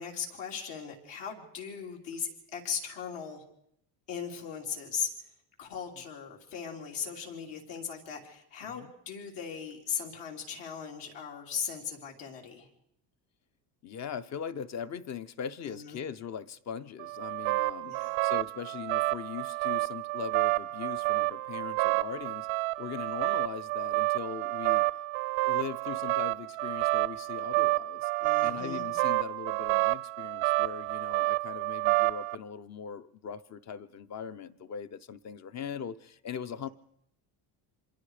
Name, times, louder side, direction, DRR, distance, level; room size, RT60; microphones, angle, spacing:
voice 1, 0.0-3.4 4.1-5.1 5.6-12.7 15.6-16.0 17.8-18.3 28.2-28.8, left 7 dB, 70° left, 4.2 m, -38 dB
voice 2, 13.8-18.0 18.2-22.5 22.8-24.9 25.4-28.1 28.4-36.7, left 7 dB, 35° left, 0.8 m, -40 dB
sound 1, 17.0-32.4, right 21 dB, 85° right, 0.7 m, -29 dB
26.5 x 22.0 x 5.0 m
cardioid pair, 150°, 44 cm